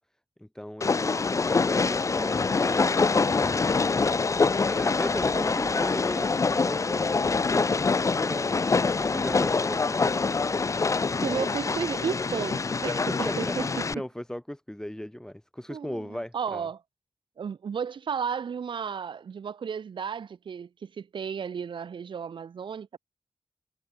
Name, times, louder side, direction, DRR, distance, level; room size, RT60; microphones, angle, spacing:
voice 1, 0.4-4.2 4.7-10.1 13.1-16.7, left 1 dB, 5° left, 0.8 m, -37 dB
Train, 0.8-13.9, left 4 dB, 35° left, 0.5 m, -25 dB
voice 2, 11.2-14.0 15.7-16.8 17.4-23.0, right 7 dB, 65° right, 0.5 m, -33 dB
wide cardioid pair, 100°, 9 cm